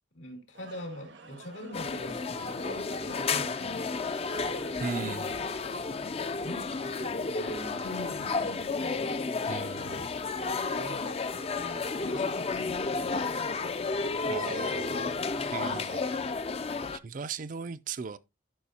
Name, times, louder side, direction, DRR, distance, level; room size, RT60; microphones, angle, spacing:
voice 1, 0.1-4.1 4.4-4.7 5.0-5.3 6.4-10.0 10.4-13.8 14.2-15.9, equal, 90° left, 2.6 m, -44 dB
sound 1, 0.5-5.7, right 3 dB, 70° right, 0.9 m, -52 dB
sound 2, 1.7-17.0, left 4 dB, 30° left, 0.4 m, -32 dB
voice 2, 4.8-5.4 9.5-10.2 14.3-15.1 15.5-16.0 16.9-18.2, right 5 dB, 45° right, 0.4 m, -37 dB
12.0 x 5.4 x 2.8 m
head